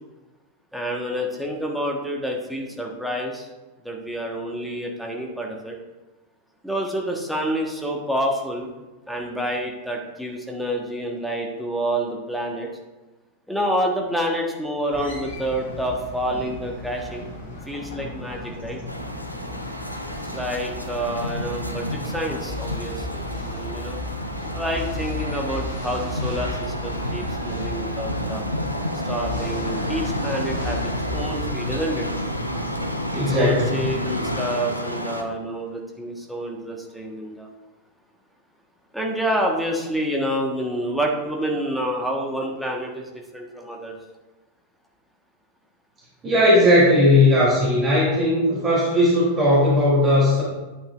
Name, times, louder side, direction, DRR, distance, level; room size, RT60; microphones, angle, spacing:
voice 1, 0.7-3.5 3.8-5.8 6.6-8.7 9.1-12.7 13.5-17.2 17.7-18.8 20.3-24.0 24.5-28.4 29.0-32.1 33.3-37.5 38.9-43.9, equal, ahead, -1 dB, 1.5 m, -28 dB
sound 1, 14.9-34.4, left 1 dB, 65° left, 2.1 m, -35 dB
sound 2, 18.9-35.2, left 1 dB, 90° left, 0.7 m, -30 dB
voice 2, 33.1-33.8 46.2-50.4, left 1 dB, 25° right, -7 dB, 3.3 m, -17 dB
11.0 x 8.7 x 2.6 m, 1.1 s
figure-of-eight pair, 90°, 0 cm